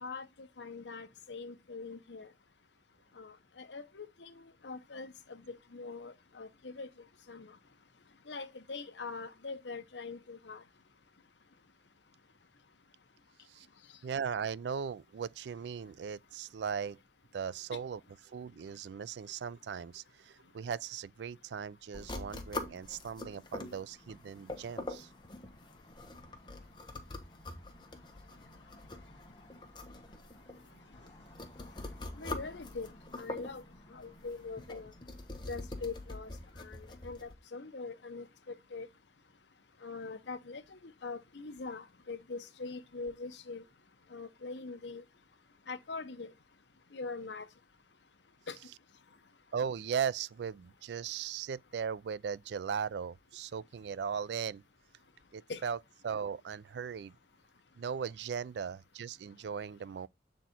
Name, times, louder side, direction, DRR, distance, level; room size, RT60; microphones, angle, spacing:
voice 1, 0.0-2.3 3.2-4.3 4.6-6.9 7.3-7.5 8.3-10.6 32.2-32.9 33.2-33.6 33.9-34.9 35.5-36.3 36.6-38.9 39.8-43.6 44.1-45.0 45.7-46.3 46.9-47.5 48.5-48.6 55.5-55.6, left 4 dB, 80° left, 0.9 m, -43 dB
voice 2, 14.0-17.0 17.3-25.1 49.5-54.6 55.3-55.8 56.0-57.2 57.8-60.1, right 7 dB, 75° right, 0.3 m, -38 dB
sound 1, 21.9-37.3, left 2 dB, 25° left, 1.2 m, -45 dB
8.1 x 4.1 x 4.3 m
head